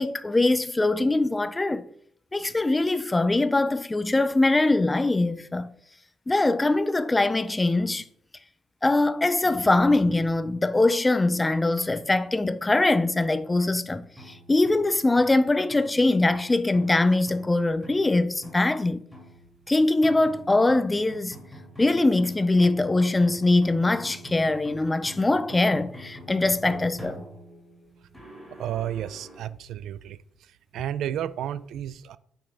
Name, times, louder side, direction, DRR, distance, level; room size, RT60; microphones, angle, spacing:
voice 1, 0.0-1.8 2.3-5.7 6.3-8.0 8.8-14.0 14.5-19.0 19.7-21.4 21.8-27.2, left 2 dB, 15° left, 0.3 m, -22 dB
sound 1, 14.0-29.4, equal, 5° right, 2.5 m, -46 dB
voice 2, 28.6-30.2 30.7-32.2, right 11 dB, 75° right, 0.3 m, -32 dB
8.7 x 5.4 x 3.6 m
cardioid pair, 155°, 0 cm